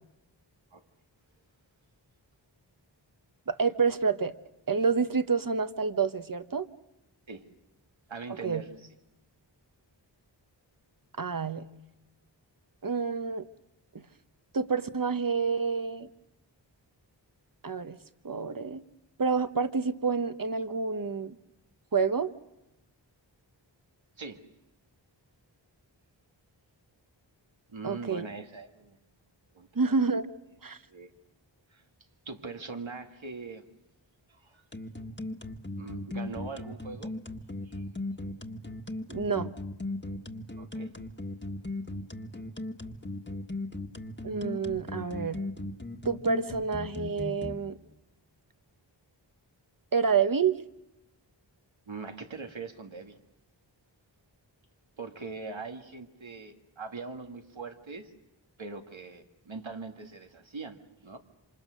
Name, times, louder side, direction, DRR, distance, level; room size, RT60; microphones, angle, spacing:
voice 1, 3.5-4.3 4.7-6.7 8.4-8.6 11.2-11.6 12.8-13.5 13.9-14.0 14.5-16.1 17.6-18.0 18.2-18.8 19.2-21.4 21.9-22.3 27.8-28.2 29.7-30.3 30.6-30.8 39.1-39.5 44.2-45.4 46.0-47.8 49.9-50.6, right 5 dB, 45° right, 11 dB, 1.1 m, -28 dB
voice 2, 8.1-8.9 24.2-24.4 27.7-29.0 29.5-29.7 30.9-31.1 31.7-31.8 32.3-33.6 34.3-34.6 35.8-37.1 37.6-37.8 40.6-40.9 51.9-53.2 55.0-58.1 58.6-61.2, right 4 dB, 85° right, 5 dB, 2.1 m, -41 dB
sound 1, 34.7-47.5, left 2 dB, 25° left, 1.6 m, -37 dB
27.0 x 27.0 x 6.4 m, 0.95 s
wide cardioid pair, 55°, 45 cm